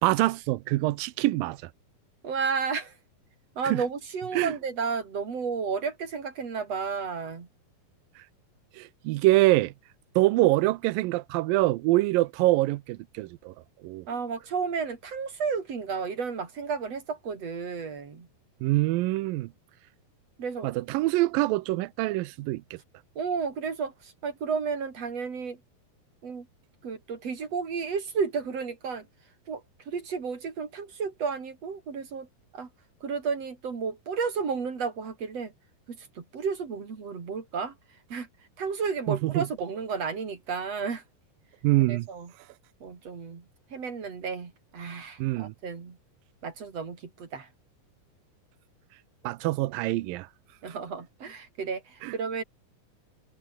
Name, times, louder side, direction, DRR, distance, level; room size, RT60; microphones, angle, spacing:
voice 1, 0.0-1.6 3.7-3.8 4.3-4.5 8.8-9.7 10.2-13.5 13.8-14.0 18.6-19.5 20.6-22.8 39.1-39.5 41.6-42.1 45.2-45.5 49.2-50.3 52.0-52.1, right 18 dB, 90° right, 2.4 m, -25 dB
voice 2, 2.2-3.0 3.6-7.5 14.1-18.3 20.4-20.7 23.2-25.6 26.2-26.5 26.8-29.1 29.5-32.3 32.5-32.7 33.0-35.5 35.9-37.8 38.1-38.3 38.6-41.0 41.9-42.3 42.8-43.5 43.7-46.0 46.4-47.5 50.6-52.4, right 5 dB, 45° right, 4.3 m, -32 dB
omnidirectional pair, 4.1 m